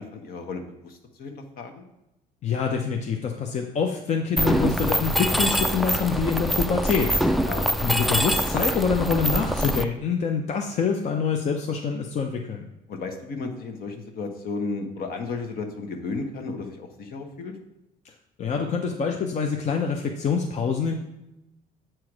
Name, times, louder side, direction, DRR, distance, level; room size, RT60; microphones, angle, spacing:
voice 1, 0.0-1.8 7.4-7.8 12.9-17.5, left 3 dB, 60° left, 5 dB, 1.2 m, -34 dB
voice 2, 2.4-7.3 7.8-12.7 18.0-18.1 18.4-20.9, left 5 dB, 45° left, 2 dB, 0.7 m, -26 dB
Mechanisms, 4.4-9.8, equal, ahead, 0.3 m, -24 dB
7.7 x 4.6 x 4.7 m, 0.91 s
cardioid pair, 110°, 17 cm